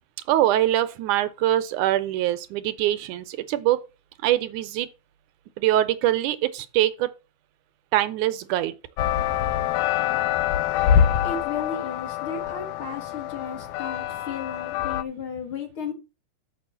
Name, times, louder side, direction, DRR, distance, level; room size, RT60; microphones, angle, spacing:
voice 1, 0.3-3.8 4.2-4.9 5.6-7.1 7.9-8.8, right 13 dB, 80° right, 2.1 m, -23 dB
sound 1, 9.0-15.0, left 9 dB, 80° left, 1.6 m, -25 dB
voice 2, 11.2-15.9, left 5 dB, 45° left, 2.2 m, -34 dB
6.7 x 6.1 x 7.4 m
omnidirectional pair, 3.8 m